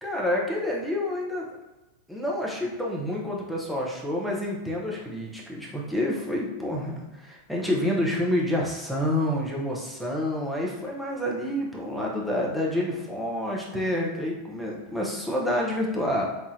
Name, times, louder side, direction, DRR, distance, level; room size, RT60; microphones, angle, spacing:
voice 1, 0.0-1.5 2.1-16.3, left 1 dB, ahead, -4 dB, 0.9 m, -28 dB
4.8 x 2.7 x 2.6 m, 1.1 s
figure-of-eight pair, 90°, 0 cm